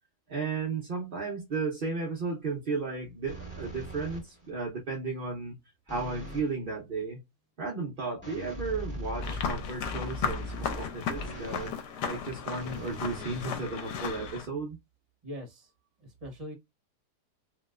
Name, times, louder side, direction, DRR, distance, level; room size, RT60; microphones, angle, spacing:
voice 1, 0.3-5.6 5.9-7.2 7.6-11.7 12.1-14.8, right 4 dB, 50° right, 0.7 m, -34 dB
sound 1, 3.3-4.5 5.9-6.5 8.2-11.8 12.6-14.1, equal, 5° left, 1.6 m, -40 dB
sound 2, 9.2-14.5, left 6 dB, 85° left, 1.3 m, -35 dB
voice 2, 15.2-15.7 16.0-16.5, equal, 25° right, 1.1 m, -42 dB
3.1 x 2.9 x 2.3 m
omnidirectional pair, 1.7 m